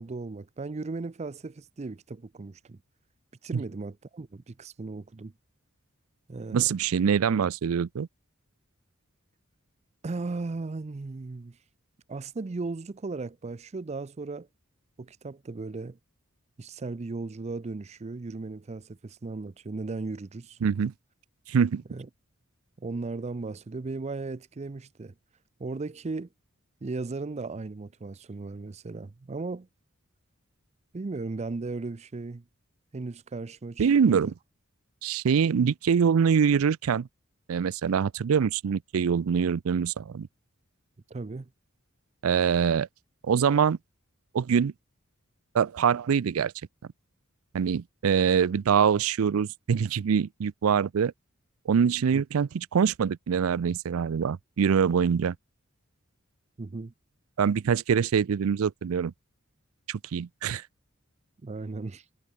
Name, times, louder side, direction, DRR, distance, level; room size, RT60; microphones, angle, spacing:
voice 1, 0.0-2.8 3.4-5.3 6.3-6.7 10.0-11.6 12.1-14.5 15.0-16.0 16.6-20.6 21.9-22.1 22.8-25.1 25.6-26.3 26.8-29.7 30.9-32.4 32.9-34.3 41.1-41.5 52.1-52.2 56.6-56.9 61.4-62.0, right 3 dB, 30° right, 0.5 m, -36 dB
voice 2, 6.5-8.1 20.6-20.9 21.5-21.8 33.8-34.3 35.0-37.1 37.5-40.3 42.2-42.9 43.2-43.8 44.3-44.7 45.5-46.5 47.5-51.1 51.7-55.4 57.4-59.1 59.9-60.6, right 7 dB, 90° right, 0.4 m, -24 dB
head